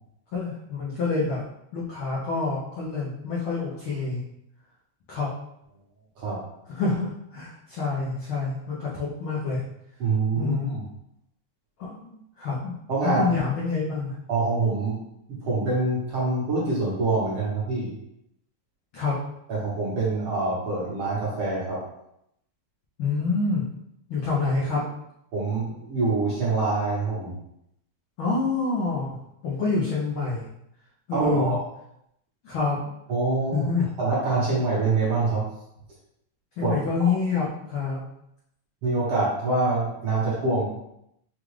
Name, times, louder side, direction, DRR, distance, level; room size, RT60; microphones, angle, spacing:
voice 1, 0.3-1.4 1.7-4.2 5.1-5.3 6.7-9.6 10.4-10.7 11.8-12.7 13.0-14.1 18.9-19.2 23.0-23.6 24.1-24.8 28.2-29.1 29.4-30.5 31.1-31.6 32.4-32.8 33.5-33.9 36.6-38.0, left 4 dB, 85° left, -5 dB, 1.1 m, -27 dB
voice 2, 10.0-10.8 12.9-13.3 14.3-15.0 15.3-17.9 19.5-21.8 25.3-27.3 31.1-31.6 33.1-33.7 34.0-35.5 36.6-36.8 38.8-40.6, right 3 dB, 60° right, -6 dB, 1.6 m, -25 dB
5.5 x 2.4 x 3.1 m, 0.79 s
omnidirectional pair, 3.4 m